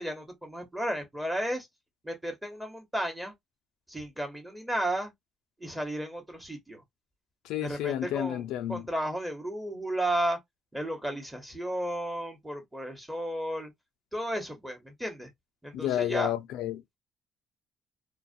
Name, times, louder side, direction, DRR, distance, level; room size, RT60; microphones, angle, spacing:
voice 1, 0.0-1.7 2.0-3.3 3.9-5.1 5.6-6.8 7.6-8.4 8.7-10.4 10.7-13.7 14.1-15.3 15.6-16.3, right 1 dB, 5° right, 1.1 m, -33 dB
voice 2, 7.4-8.9 15.7-17.0, left 11 dB, 85° left, 0.4 m, -31 dB
2.4 x 2.1 x 2.5 m
cardioid pair, 105°, 0 cm